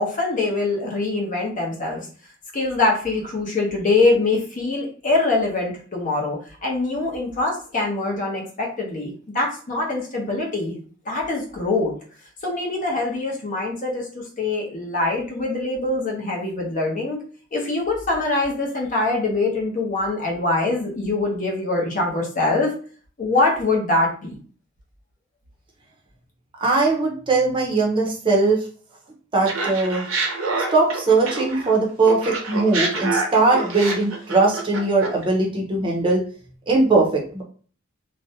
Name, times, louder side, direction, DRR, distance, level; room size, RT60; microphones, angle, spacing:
voice 1, 0.0-2.1 2.5-9.1 9.3-10.7 11.1-11.9 12.4-17.2 17.5-22.7 23.2-24.4, left 2 dB, 40° left, -1 dB, 0.7 m, -23 dB
voice 2, 26.6-28.6 29.3-30.0 30.7-36.2 36.7-37.4, right 3 dB, 25° right, -1 dB, 0.6 m, -20 dB
Laughter, 29.5-31.7 32.0-35.2, right 3 dB, 85° right, 0.7 m, -27 dB
2.5 x 2.1 x 2.7 m, 0.43 s
head